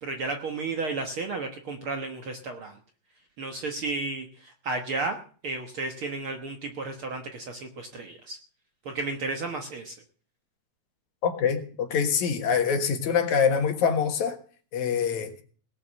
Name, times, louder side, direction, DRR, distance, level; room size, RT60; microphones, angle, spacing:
voice 1, 0.0-2.7 3.4-5.2 5.4-8.4 8.8-9.9, right 3 dB, 55° right, 1.6 m, -33 dB
voice 2, 11.2-14.4 14.7-15.3, left 6 dB, 65° left, 2.7 m, -25 dB
18.5 x 6.9 x 7.4 m
omnidirectional pair, 3.7 m